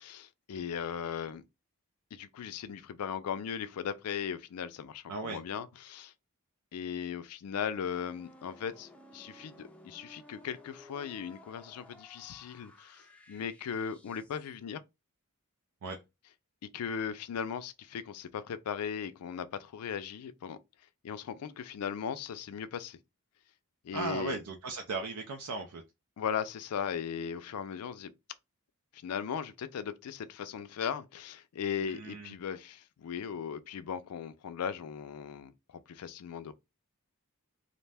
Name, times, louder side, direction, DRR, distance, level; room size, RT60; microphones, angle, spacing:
voice 1, 0.0-1.4 2.1-6.1 6.7-14.8 16.7-20.6 21.0-23.0 23.8-24.4 26.2-28.1 29.0-36.5, left 7 dB, 80° left, 0.4 m, -38 dB
voice 2, 5.1-5.4 15.8-16.0 23.9-25.8 31.8-32.3, right 3 dB, 80° right, 0.4 m, -37 dB
sound 1, 7.9-14.6, left 1 dB, 5° left, 0.4 m, -56 dB
2.5 x 2.1 x 3.3 m
head